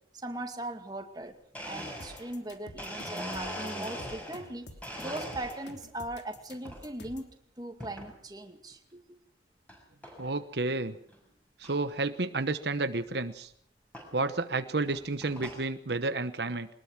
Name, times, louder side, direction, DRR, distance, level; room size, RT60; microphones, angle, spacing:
voice 1, 0.1-1.4 1.6-4.7 5.0-7.3 7.6-9.0, right 1 dB, 20° right, 5 dB, 2.3 m, -39 dB
Domestic sounds home sounds, 1.2-1.3 1.5-4.5 4.8-5.8 6.3-6.8 7.8-8.1 8.7-8.8 9.7-9.8 10.0-10.4 10.8-10.9 11.1-11.2 11.6-11.7 13.1-13.2 13.9-14.1 14.7-15.7, equal, 10° left, 6.5 m, -40 dB
sound 1, 2.0-7.3, left 1 dB, 75° left, 3.0 m, -49 dB
voice 2, 10.2-11.0 11.6-13.5 14.1-16.7, right 3 dB, 70° right, 10 dB, 1.0 m, -31 dB
23.0 x 20.5 x 6.1 m, 0.66 s
head